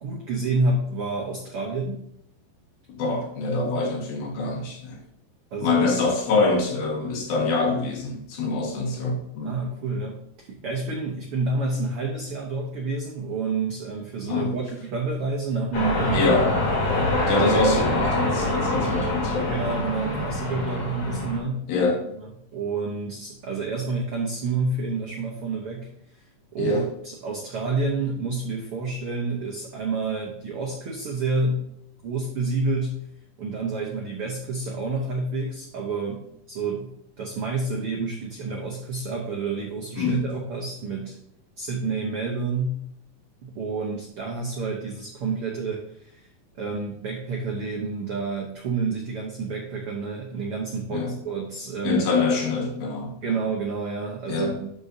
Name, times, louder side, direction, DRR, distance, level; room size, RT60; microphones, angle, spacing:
voice 1, 0.0-2.0 5.5-5.9 9.4-16.3 17.2-17.6 19.5-21.9 22.2-25.9 26.5-31.7 32.0-33.0 33.4-36.9 37.2-41.2 41.6-42.8 43.4-46.3 46.6-52.0 53.2-54.7, right 3 dB, 75° right, 0 dB, 1.3 m, -29 dB
voice 2, 3.0-5.0 5.6-9.6 14.3-14.5 16.1-16.5 17.2-19.6 21.7-22.0 26.6-26.9 40.0-40.3 50.9-51.2 51.8-53.4 54.3-54.6, left 3 dB, 85° left, 1 dB, 3.4 m, -24 dB
sound 1, 15.7-21.4, left 1 dB, 50° left, 2.9 m, -25 dB
12.0 x 5.4 x 2.7 m, 0.75 s
omnidirectional pair, 4.1 m